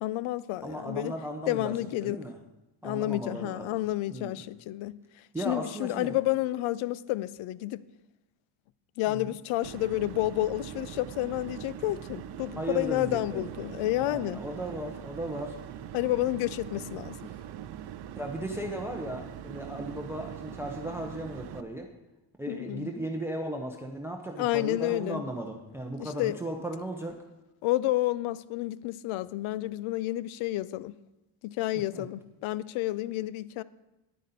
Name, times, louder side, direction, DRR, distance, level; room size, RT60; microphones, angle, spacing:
voice 1, 0.0-1.1 1.5-2.2 2.8-4.9 5.4-7.8 9.0-14.4 15.9-17.2 22.5-22.9 24.4-25.2 26.0-26.4 27.6-30.9 31.4-33.6, left 16 dB, 75° left, 0.6 m, -30 dB
voice 2, 0.6-2.3 2.8-3.8 4.1-4.5 5.3-6.2 9.1-9.3 12.6-13.4 14.0-15.6 18.2-21.9 22.4-27.2 31.9-32.1, right 1 dB, 5° right, 0.7 m, -36 dB
sound 1, 9.6-21.6, right 10 dB, 55° right, 0.6 m, -42 dB
10.5 x 9.2 x 4.1 m
cardioid pair, 135°, 50 cm